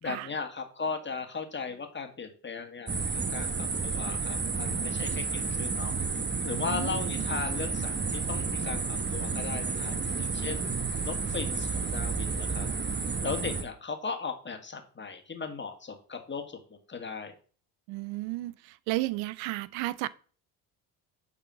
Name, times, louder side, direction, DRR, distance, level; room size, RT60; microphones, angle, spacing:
voice 1, 0.0-5.9 6.4-10.6 11.0-12.7 13.2-16.6 16.9-17.3, left 5 dB, 25° left, 2.0 m, -37 dB
sound 1, 2.9-13.6, right 4 dB, 25° right, 1.5 m, -31 dB
voice 2, 6.7-7.2 17.9-20.1, right 18 dB, 75° right, 0.6 m, -33 dB
9.2 x 4.1 x 5.7 m
supercardioid pair, 80°, 46 cm